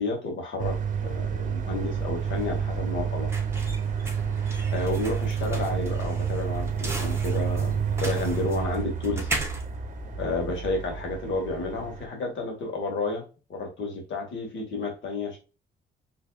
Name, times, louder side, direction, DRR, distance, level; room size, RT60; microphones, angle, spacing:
voice 1, 0.0-3.3 4.7-9.3 10.2-15.4, left 3 dB, 70° left, 2 dB, 1.9 m, -31 dB
sound 1, 0.6-12.1, right 7 dB, 40° right, 0.9 m, -29 dB
sound 2, 1.8-10.8, right 1 dB, 15° right, 1.5 m, -38 dB
4.7 x 3.3 x 2.5 m, 0.32 s
cardioid pair, 90°, 20 cm